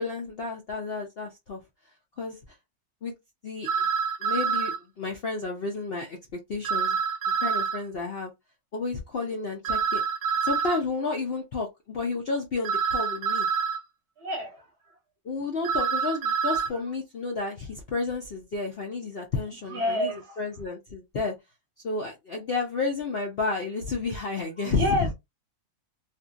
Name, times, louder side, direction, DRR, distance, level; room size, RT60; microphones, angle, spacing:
voice 1, 0.0-1.6 2.2-2.4 3.0-3.1 3.4-3.9 4.2-6.2 6.5-7.0 7.4-8.3 8.7-10.0 10.4-13.5 15.2-21.3 21.8-25.1, left 3 dB, 60° left, 0.6 m, -31 dB
sound 1, 3.6-4.8 6.6-7.8 9.6-10.8 12.6-13.8 15.6-16.7, right 6 dB, 80° right, 1.1 m, -26 dB
voice 2, 14.2-15.0 16.7-16.8 19.7-20.4 24.6-25.1, left 1 dB, 55° right, 0.8 m, -29 dB
2.8 x 2.5 x 2.4 m
omnidirectional pair, 1.7 m